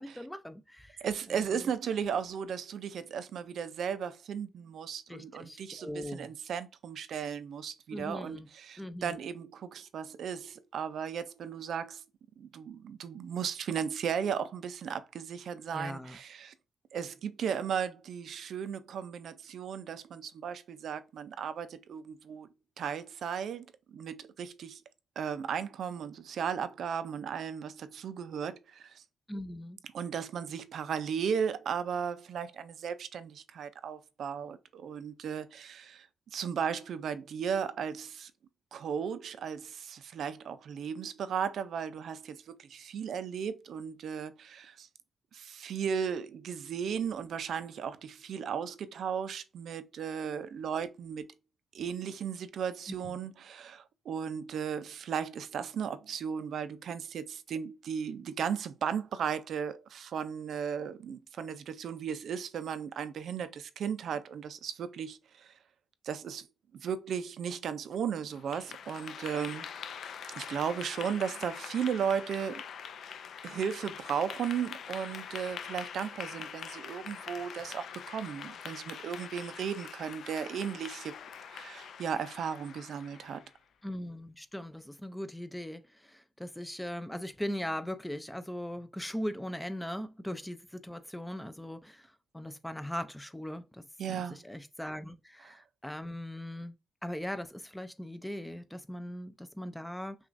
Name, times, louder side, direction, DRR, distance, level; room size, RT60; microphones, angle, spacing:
voice 1, 0.0-1.0 1.3-1.7 5.1-6.3 7.9-8.5 8.8-9.2 15.7-16.2 29.3-29.8 53.0-53.2 83.8-92.1 92.3-93.8 94.1-96.7 97.0-100.2, equal, 5° left, 0.4 m, -39 dB
voice 2, 1.0-12.0 12.4-16.5 16.9-22.5 22.8-24.8 25.2-29.0 29.9-38.3 38.7-44.9 45.3-51.3 51.7-65.5 66.0-66.5 66.7-69.7 70.3-72.6 73.4-81.2 81.5-83.4 94.0-94.4 95.5-95.6, right 7 dB, 65° right, 0.5 m, -36 dB
Clapping / Applause, 68.3-83.6, left 7 dB, 65° left, 0.4 m, -44 dB
6.0 x 2.4 x 2.5 m
cardioid pair, 130°, 0 cm